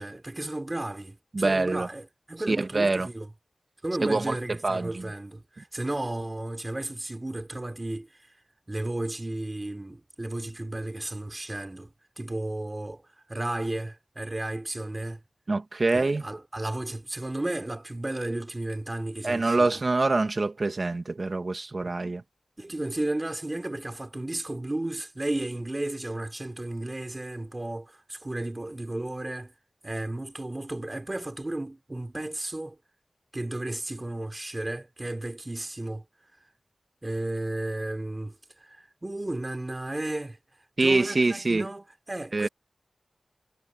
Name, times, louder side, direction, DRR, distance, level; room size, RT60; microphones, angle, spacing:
voice 1, 0.0-3.3 3.8-8.1 8.7-13.0 13.3-15.2 15.9-19.8 21.8-22.0 22.6-29.5 29.8-32.8 33.3-36.0 37.0-38.3 38.6-40.4 40.8-42.5, right 1 dB, 25° right, 4.9 m, -33 dB
voice 2, 1.3-1.9 2.5-3.1 4.0-4.4 4.6-5.1 15.5-16.2 19.2-22.2 40.8-41.7 42.3-42.5, right 3 dB, 45° right, 2.3 m, -25 dB
wide cardioid pair, 80°, 0 cm